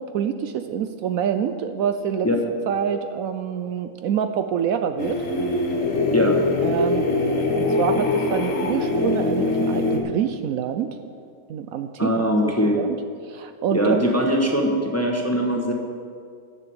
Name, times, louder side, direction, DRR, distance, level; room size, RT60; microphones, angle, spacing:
voice 1, 0.0-2.3 2.7-5.2 6.6-7.0 7.6-11.0 11.5-13.0 13.3-14.0, right 8 dB, 70° right, 8 dB, 0.9 m, -26 dB
sound 1, 5.0-10.0, left 2 dB, 55° left, 1.7 m, -22 dB
voice 2, 12.0-12.8 13.7-15.7, equal, 10° left, 1 dB, 0.9 m, -21 dB
10.5 x 6.8 x 8.0 m, 2.2 s
omnidirectional pair, 1.6 m